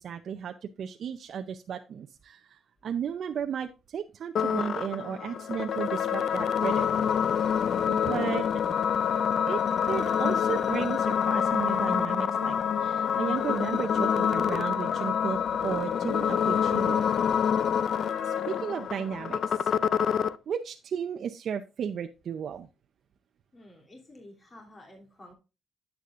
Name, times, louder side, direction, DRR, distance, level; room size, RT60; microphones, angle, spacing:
voice 1, 0.0-7.0 7.9-8.5 9.5-17.1 18.2-19.7 20.5-22.7, right 8 dB, 60° right, 5 dB, 0.6 m, -34 dB
sound 1, 4.4-20.4, left 8 dB, 60° left, 0.4 m, -27 dB
voice 2, 23.5-25.3, left 1 dB, 30° left, 0 dB, 3.1 m, -51 dB
10.0 x 8.1 x 2.5 m, 0.29 s
cardioid pair, 90°, 0 cm